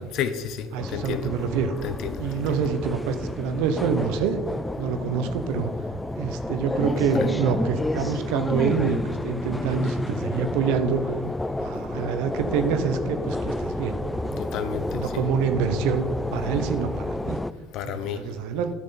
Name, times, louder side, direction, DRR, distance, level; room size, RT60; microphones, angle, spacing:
voice 1, 0.1-1.3 1.8-2.6 6.9-7.3 14.4-15.3 17.7-18.2, left 8 dB, 60° left, 11 dB, 0.7 m, -32 dB
voice 2, 0.7-1.7 2.2-4.4 4.8-5.7 6.2-11.0 11.6-14.4 14.9-16.1 16.3-17.4 18.1-18.7, right 6 dB, 70° right, 9 dB, 0.8 m, -26 dB
sound 1, 0.8-17.5, left 2 dB, 10° left, 0.3 m, -30 dB
11.0 x 6.5 x 4.0 m, 1.4 s
hypercardioid pair, 70°, 0 cm